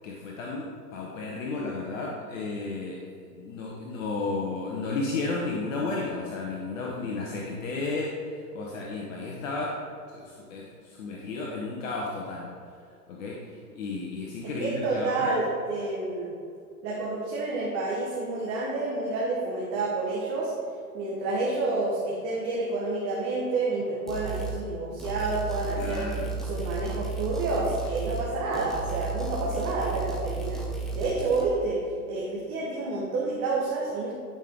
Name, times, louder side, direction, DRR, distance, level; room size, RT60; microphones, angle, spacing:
voice 1, 0.0-9.8 10.1-12.5 13.1-15.3 25.7-26.3, left 3 dB, 55° left, -2 dB, 1.2 m, -33 dB
voice 2, 14.4-16.3 16.8-20.5 20.9-26.0 26.4-30.6 30.9-31.8 32.1-34.1, right 3 dB, 30° right, -4 dB, 1.5 m, -29 dB
sound 1, 24.1-24.6 25.0-28.3 28.5-31.5, right 4 dB, ahead, 0.8 m, -33 dB
11.0 x 5.7 x 3.7 m, 2.3 s
figure-of-eight pair, 110°, 48 cm